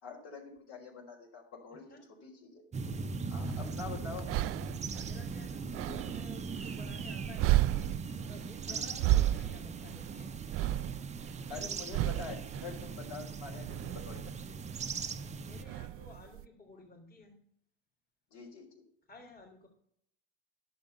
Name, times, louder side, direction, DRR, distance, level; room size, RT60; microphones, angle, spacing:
voice 1, 0.0-2.7 3.3-4.3 8.7-9.2 11.5-14.6 18.3-18.8, left 5 dB, 60° left, 0 dB, 3.7 m, -46 dB
sound 1, 2.7-15.6, right 4 dB, 25° right, 0.8 m, -40 dB
voice 2, 3.3-3.7 4.0-4.2 5.0-7.7 8.2-10.3 15.4-17.4 19.1-19.7, left 3 dB, 30° left, -1 dB, 3.1 m, -54 dB
sound 2, 3.4-16.4, right 15 dB, 50° right, 0.4 m, -34 dB
10.5 x 6.9 x 6.7 m, 0.70 s
hypercardioid pair, 90°, 29 cm